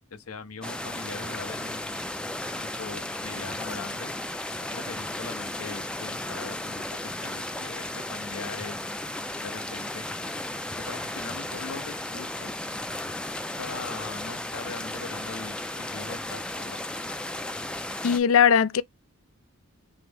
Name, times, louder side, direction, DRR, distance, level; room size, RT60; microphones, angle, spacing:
voice 1, 0.1-2.0 2.6-4.1 4.7-6.8 7.2-8.8 9.4-10.0 10.8-12.5 13.6-16.8, left 4 dB, 85° left, 0.9 m, -40 dB
sound 1, 0.6-18.2, left 1 dB, 5° left, 0.3 m, -34 dB
voice 2, 18.0-18.8, left 7 dB, 70° left, 0.4 m, -19 dB
5.6 x 2.0 x 3.4 m
head